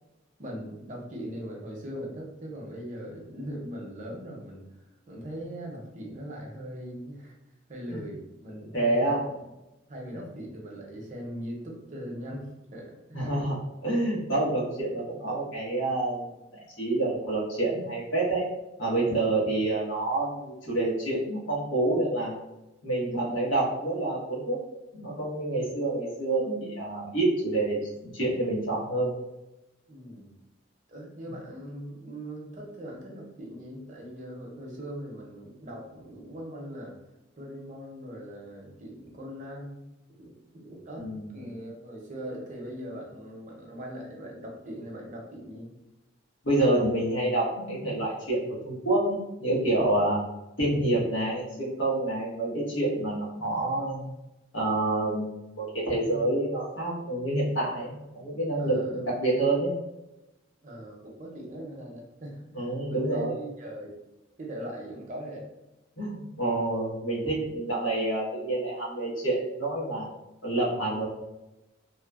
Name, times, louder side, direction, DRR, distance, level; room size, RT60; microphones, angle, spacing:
voice 1, 0.4-4.7 5.1-7.3 7.7-9.3 9.9-13.4 29.9-30.3 30.9-36.9 37.4-39.8 40.2-41.1 41.3-45.7 56.1-56.4 58.6-59.1 60.6-63.9 64.4-65.4, equal, 40° right, -2 dB, 0.6 m, -40 dB
voice 2, 8.7-9.2 13.1-13.6 13.8-18.4 18.8-22.4 22.8-24.6 24.9-27.8 28.1-29.1 41.0-41.3 46.4-50.2 50.6-54.1 54.5-59.7 62.5-63.3 66.0-70.1 70.4-71.0, right 2 dB, 85° left, -5 dB, 1.1 m, -28 dB
3.0 x 2.0 x 2.3 m, 0.96 s
head